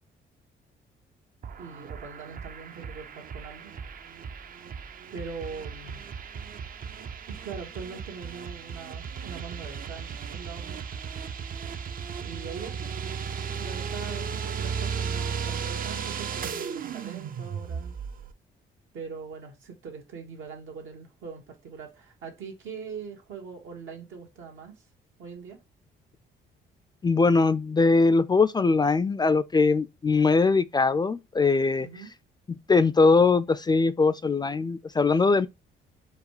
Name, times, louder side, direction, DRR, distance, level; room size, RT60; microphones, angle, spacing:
sound 1, 1.4-18.3, right 6 dB, 45° right, 0.5 m, -35 dB
voice 1, 1.6-3.7 5.1-6.0 7.3-10.8 12.2-12.9 13.6-18.0 18.9-24.8 25.2-25.6 31.8-32.1, right 5 dB, 80° right, 1.5 m, -42 dB
voice 2, 27.0-31.9 32.5-35.5, left 4 dB, 20° left, 0.3 m, -21 dB
4.8 x 2.3 x 4.8 m
cardioid pair, 90°, 20 cm